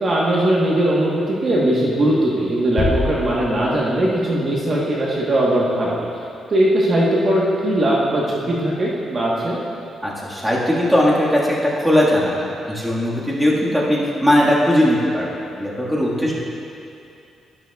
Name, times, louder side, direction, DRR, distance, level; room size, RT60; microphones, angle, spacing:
voice 1, 0.0-6.0 6.5-9.6 16.2-16.3, right 1 dB, 35° right, -5 dB, 1.2 m, -19 dB
sound 1, 2.8-4.3, left 3 dB, 30° left, 0.6 m, -26 dB
voice 2, 10.0-15.3 15.6-16.3, equal, 5° right, -6 dB, 1.6 m, -19 dB
12.0 x 11.5 x 2.3 m, 2.6 s
cardioid pair, 140°, 0 cm